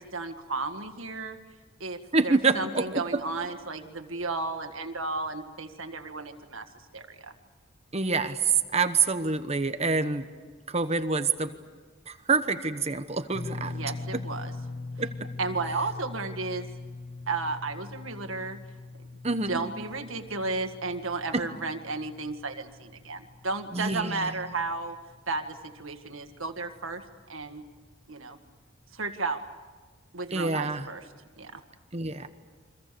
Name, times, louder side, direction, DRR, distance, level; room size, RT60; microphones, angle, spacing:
voice 1, 0.0-1.4 1.8-6.7 6.9-7.3 13.6-14.5 15.4-16.7 17.3-18.6 19.5-25.0 25.3-27.0 27.3-27.6 28.1-28.4 28.9-29.4 30.1-31.0 31.4-31.6, right 3 dB, 90° right, 7 dB, 2.0 m, -33 dB
voice 2, 2.1-3.0 7.9-10.3 10.7-11.5 12.1-13.7 15.0-15.3 19.2-19.6 23.7-24.3 30.3-30.9 31.9-32.3, right 4 dB, 30° right, 10 dB, 1.1 m, -26 dB
sound 1, 13.3-25.6 25.8-26.1 27.7-27.8, left 2 dB, 75° left, 1.4 m, -42 dB
29.5 x 24.5 x 6.9 m, 1.4 s
head